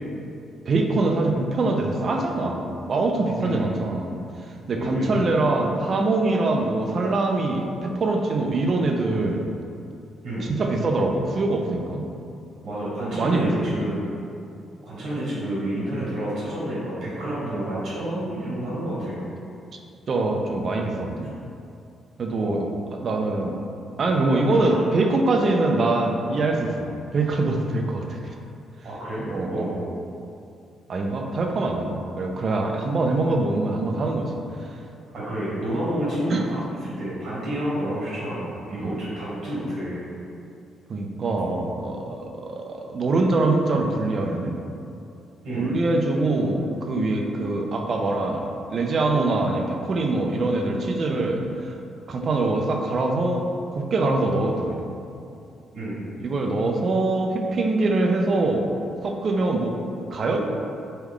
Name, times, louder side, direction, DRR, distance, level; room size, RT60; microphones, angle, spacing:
voice 1, 0.7-9.4 10.5-12.0 13.0-13.7 20.1-21.3 22.2-22.6 22.9-23.6 24.0-26.9 27.1-28.3 29.3-29.7 30.9-34.3 34.6-34.7 36.3-36.4 38.8-38.9 40.9-44.6 45.5-51.7 52.1-54.8 56.2-58.7 59.0-59.8 60.1-60.5, right 2 dB, 50° right, 2 dB, 0.4 m, -24 dB
voice 2, 3.4-3.7 4.8-5.2 10.2-10.5 12.6-14.0 14.8-19.2 22.4-22.7 24.5-24.7 28.8-29.8 35.1-36.4 36.8-40.0 45.4-45.7 55.7-56.1, right 1 dB, 70° right, -8 dB, 1.2 m, -29 dB
3.1 x 2.3 x 3.6 m, 2.6 s
cardioid pair, 90°, 0 cm